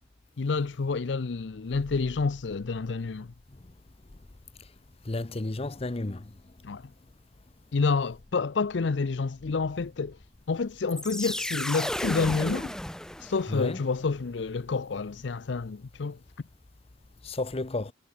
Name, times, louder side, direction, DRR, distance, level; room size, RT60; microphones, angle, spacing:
voice 1, 0.4-3.3 6.6-6.9 7.7-10.2 10.5-12.7 13.2-16.2, left 4 dB, 75° left, 0.6 m, -29 dB
voice 2, 5.1-6.2 13.5-13.8 17.2-17.9, left 2 dB, 35° left, 0.8 m, -32 dB
sound 1, 10.9-13.7, left 1 dB, 5° left, 0.6 m, -33 dB
head